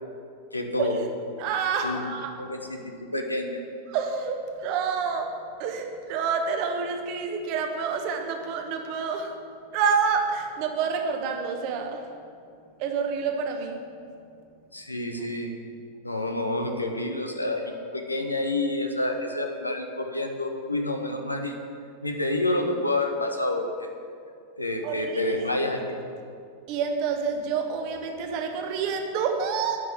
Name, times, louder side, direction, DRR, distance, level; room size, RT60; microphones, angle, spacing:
voice 1, 0.5-1.0 1.8-2.1 2.4-3.6 14.7-15.6 16.0-17.6 17.9-21.5 22.0-23.9 24.6-26.0, left 2 dB, 85° left, 4 dB, 1.1 m, -28 dB
voice 2, 1.4-2.5 3.9-9.4 9.7-12.2 12.8-13.9 24.8-25.5 26.7-29.8, right 5 dB, 45° right, 5 dB, 1.2 m, -28 dB
9.3 x 6.0 x 8.1 m, 2.4 s
figure-of-eight pair, 90°, 0 cm